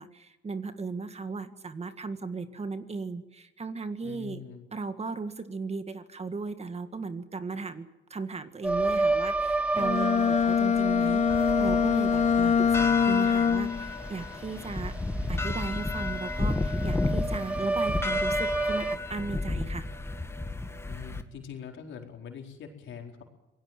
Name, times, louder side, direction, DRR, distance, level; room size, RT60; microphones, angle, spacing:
voice 1, 0.0-4.4 4.7-14.9 15.3-19.9, right 4 dB, 30° right, 10 dB, 1.9 m, -36 dB
voice 2, 4.0-4.7 12.3-13.2 20.9-23.2, left 7 dB, 75° left, 2 dB, 4.5 m, -43 dB
sound 1, 8.6-19.0, right 2 dB, 5° right, 1.1 m, -31 dB
Bowed string instrument, 9.8-13.9, left 7 dB, 35° left, 1.2 m, -24 dB
sound 2, 11.3-21.2, left 2 dB, 10° left, 2.0 m, -32 dB
26.0 x 18.0 x 7.5 m, 1.0 s
cardioid pair, 90°, 20 cm